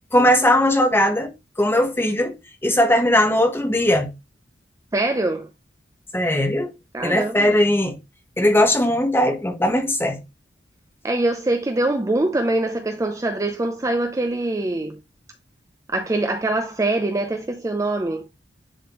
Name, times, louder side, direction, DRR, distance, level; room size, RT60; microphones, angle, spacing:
voice 1, 0.1-1.3 1.6-2.3 2.6-4.1 6.1-6.7 7.0-8.0 8.4-10.2, left 1 dB, 10° left, 1.2 m, -19 dB
voice 2, 4.9-5.5 6.9-7.5 11.0-15.0 15.9-18.2, right 2 dB, 15° right, 0.5 m, -23 dB
10.0 x 3.5 x 3.0 m
head